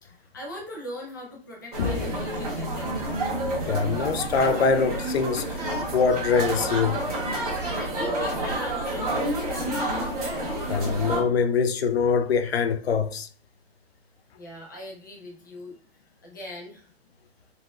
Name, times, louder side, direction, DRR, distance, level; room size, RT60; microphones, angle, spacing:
voice 1, 0.0-3.0 7.5-10.0 14.3-15.7 16.2-16.9, left 1 dB, 20° left, 0.5 m, -40 dB
sound 1, 1.7-11.2, right 1 dB, 35° right, 1.5 m, -29 dB
voice 2, 3.7-5.6 5.9-7.1 10.7-13.3, left 5 dB, 75° left, 0.5 m, -24 dB
4.0 x 2.2 x 2.3 m
hypercardioid pair, 170°, 31 cm